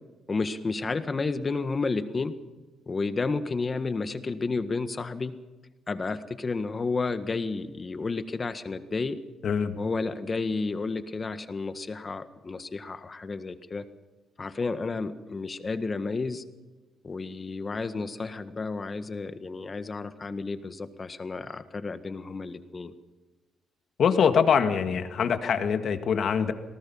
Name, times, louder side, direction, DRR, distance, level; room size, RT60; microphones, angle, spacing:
voice 1, 0.3-2.3 2.9-5.3 5.9-9.2 9.8-13.9 14.4-16.4 17.0-22.9, left 3 dB, 30° left, 9 dB, 1.7 m, -31 dB
voice 2, 9.4-9.7 24.0-26.5, left 7 dB, 60° left, 7 dB, 1.9 m, -23 dB
27.0 x 19.0 x 5.7 m, 1.2 s
cardioid pair, 90°, 0 cm